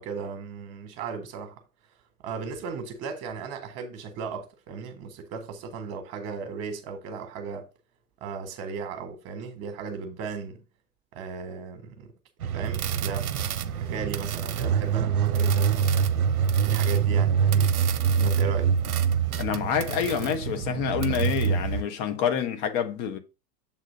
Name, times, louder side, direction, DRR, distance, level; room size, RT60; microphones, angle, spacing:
voice 1, 0.0-1.6 2.2-7.7 8.2-10.6 11.1-12.1 12.4-13.3 13.8-16.1 16.6-17.7 18.1-18.7, right 5 dB, 30° right, 1.6 m, -36 dB
sound 1, 12.4-21.8, right 7 dB, 65° right, 0.8 m, -25 dB
voice 2, 19.4-23.2, left 8 dB, 30° left, 1.1 m, -27 dB
7.4 x 3.8 x 5.2 m
figure-of-eight pair, 100°, 48 cm